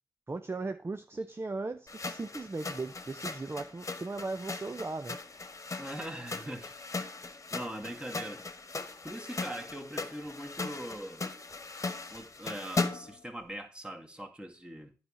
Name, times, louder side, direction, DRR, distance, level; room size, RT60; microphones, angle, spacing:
voice 1, 0.3-5.2, right 3 dB, 30° right, 0.7 m, -37 dB
sound 1, 1.9-13.2, left 3 dB, 40° left, 1.3 m, -38 dB
voice 2, 5.8-6.7 7.5-8.5 9.0-11.3 12.1-14.9, right 1 dB, 15° right, 2.0 m, -41 dB
9.6 x 5.0 x 5.7 m
supercardioid pair, 40°, 8 cm